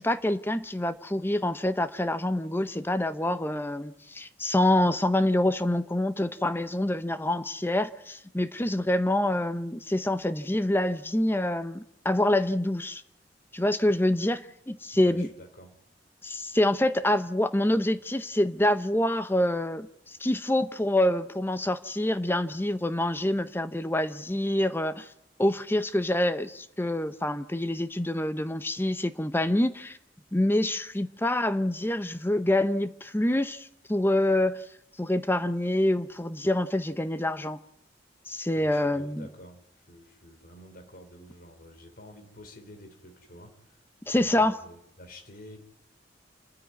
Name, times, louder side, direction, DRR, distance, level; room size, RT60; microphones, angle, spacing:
voice 1, 0.0-13.0 13.5-15.3 16.2-25.1 25.4-30.0 30.3-34.6 35.0-37.6 38.3-39.3 44.1-44.6, left 1 dB, 10° left, 12 dB, 0.7 m, -26 dB
voice 2, 14.9-15.8 38.6-45.6, equal, 55° left, 7 dB, 3.2 m, -49 dB
29.0 x 9.8 x 9.5 m, 0.74 s
head